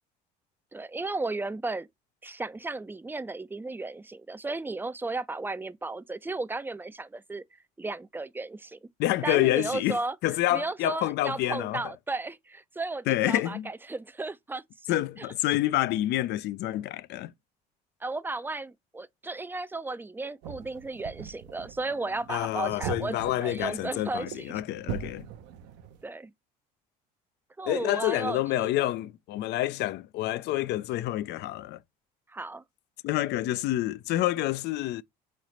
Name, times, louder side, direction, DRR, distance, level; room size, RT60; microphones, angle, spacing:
voice 1, 0.7-1.9 2.2-8.8 9.2-10.2 10.5-15.3 18.0-24.5 26.0-26.3 27.6-28.9 32.3-32.6, right 3 dB, 10° right, 0.4 m, -34 dB
voice 2, 9.0-11.8 13.1-13.7 14.9-17.3 22.3-25.3 27.7-31.8 33.0-35.0, left 15 dB, 60° left, 0.4 m, -28 dB
sound 1, 20.4-26.0, right 9 dB, 70° right, 0.7 m, -41 dB
3.8 x 3.2 x 4.2 m
hypercardioid pair, 65°, 20 cm